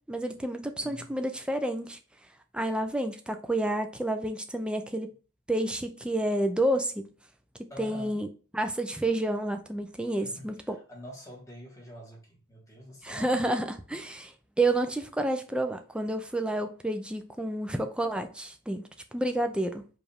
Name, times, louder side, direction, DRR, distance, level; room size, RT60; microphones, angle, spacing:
voice 1, 0.0-2.0 2.5-5.1 5.5-7.1 7.8-8.3 8.5-10.8 13.0-19.9, right 1 dB, 5° right, 0.4 m, -30 dB
voice 2, 0.8-1.1 7.7-8.2 10.2-13.4, equal, 15° left, 1.3 m, -46 dB
4.9 x 2.5 x 3.3 m
head